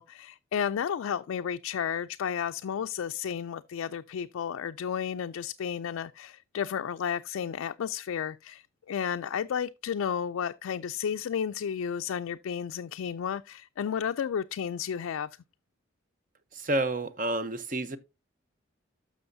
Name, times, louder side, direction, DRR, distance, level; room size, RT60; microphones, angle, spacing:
voice 1, 0.0-15.3, left 8 dB, 85° left, 0.3 m, -32 dB
voice 2, 16.5-18.0, right 2 dB, 40° right, 0.7 m, -29 dB
12.5 x 6.2 x 2.6 m
head